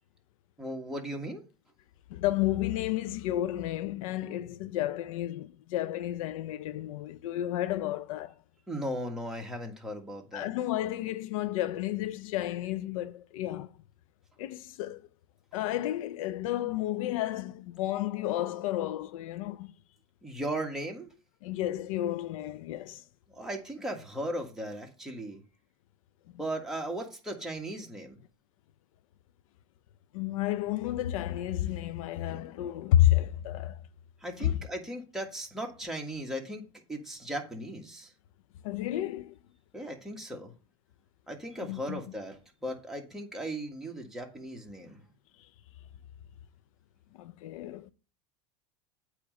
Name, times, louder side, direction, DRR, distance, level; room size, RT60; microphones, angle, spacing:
voice 1, 0.6-1.4 8.7-10.5 20.2-21.1 23.3-25.4 26.4-28.2 34.2-36.6 36.9-38.1 39.7-40.5 41.3-45.0, right 1 dB, ahead, 1.7 m, -37 dB
voice 2, 2.1-8.4 10.3-13.7 14.4-15.0 15.5-19.7 21.4-23.0 30.1-33.8 34.4-34.6 38.6-39.4 41.6-42.0 47.1-47.9, left 13 dB, 75° left, 0.5 m, -31 dB
8.5 x 3.2 x 6.3 m
supercardioid pair, 105°, 18 cm